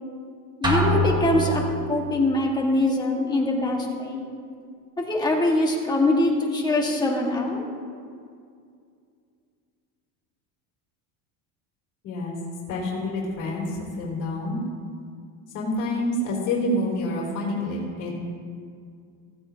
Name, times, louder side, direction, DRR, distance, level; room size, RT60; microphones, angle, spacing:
voice 1, 0.6-1.6 1.9-4.2 5.0-7.6, left 2 dB, 10° left, -1 dB, 1.6 m, -23 dB
sound 1, 0.6-2.1, equal, 10° right, 1.3 m, -24 dB
voice 2, 12.0-12.4 12.7-14.6 15.5-18.1, left 1 dB, 45° left, -4 dB, 3.2 m, -27 dB
16.0 x 15.0 x 2.8 m, 2.3 s
cardioid pair, 165°, 41 cm